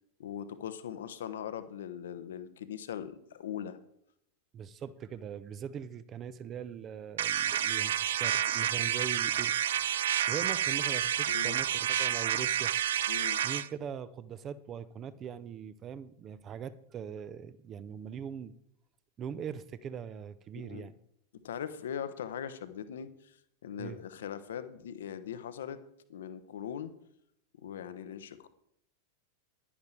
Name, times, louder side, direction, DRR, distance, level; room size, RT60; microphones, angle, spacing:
voice 1, 0.2-3.8 11.3-11.6 13.1-13.4 20.5-20.9 21.4-23.3 23.6-25.8 26.1-26.9 27.6-28.5, left 9 dB, 60° left, 12 dB, 0.9 m, -40 dB
voice 2, 4.5-9.5 10.3-12.7 13.4-18.5 19.2-21.0 23.8-24.0, right 8 dB, 30° right, 16 dB, 0.7 m, -41 dB
sound 1, 7.2-13.7, right 11 dB, 60° right, 0.3 m, -29 dB
10.5 x 10.5 x 4.5 m, 0.74 s
figure-of-eight pair, 90°, 0 cm